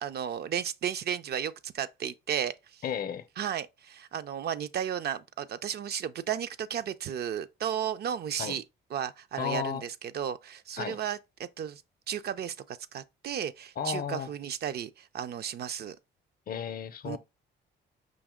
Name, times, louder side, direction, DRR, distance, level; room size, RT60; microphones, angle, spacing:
voice 1, 0.0-2.8 3.4-8.6 8.9-11.8 12.1-16.0 17.1-17.2, right 9 dB, 55° right, 0.4 m, -34 dB
voice 2, 2.8-3.2 8.4-8.6 9.4-9.8 10.8-11.0 13.8-14.3 16.5-17.2, left 8 dB, 50° left, 0.6 m, -33 dB
5.2 x 2.8 x 3.6 m
cardioid pair, 90°, 20 cm